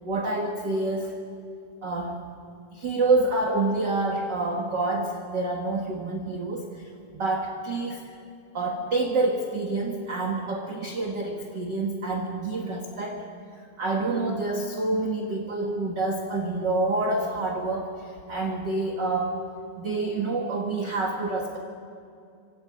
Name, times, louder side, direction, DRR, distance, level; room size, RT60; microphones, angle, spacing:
voice 1, 0.0-1.1 1.8-2.2 2.7-8.0 8.5-13.2 13.6-19.4 19.7-21.6, right 2 dB, 45° right, 1 dB, 1.6 m, -27 dB
27.0 x 24.5 x 5.3 m, 2.4 s
omnidirectional pair, 4.1 m